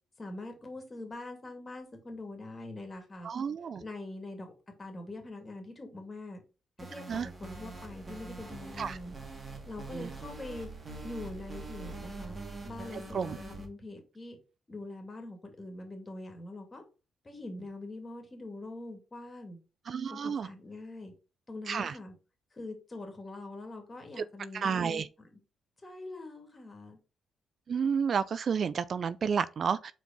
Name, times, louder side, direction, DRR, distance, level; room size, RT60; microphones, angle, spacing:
voice 1, 0.2-3.3 3.8-4.5 4.8-6.4 6.8-9.1 9.6-10.7 11.0-12.4 12.6-14.4 14.7-16.8 17.2-19.6 20.1-21.1 21.5-22.1 22.5-25.3 25.8-27.0, left 2 dB, 30° left, 2.4 m, -43 dB
voice 2, 3.2-3.8 7.1-7.3 8.8-9.0 9.9-10.1 12.9-13.4 19.9-20.5 21.7-21.9 24.2-24.3 24.5-25.1 27.7-29.9, right 6 dB, 55° right, 0.4 m, -31 dB
sound 1, 6.8-13.7, right 3 dB, 30° right, 2.2 m, -44 dB
4.5 x 4.5 x 5.2 m
cardioid pair, 70°, 0 cm